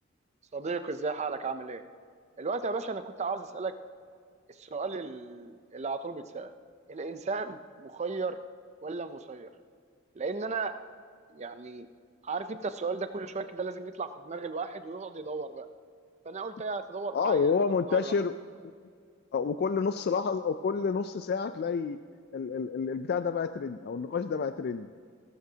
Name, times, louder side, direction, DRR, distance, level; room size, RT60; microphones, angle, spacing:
voice 1, 0.5-1.8 2.4-3.7 4.5-6.5 6.9-8.4 8.8-9.5 10.1-10.7 11.3-11.9 12.2-15.7 16.2-18.1, right 4 dB, 30° right, 10 dB, 0.5 m, -35 dB
voice 2, 17.1-18.4 19.3-22.0 22.3-24.9, left 5 dB, 50° left, 10 dB, 0.3 m, -29 dB
18.0 x 12.0 x 2.8 m, 2.1 s
head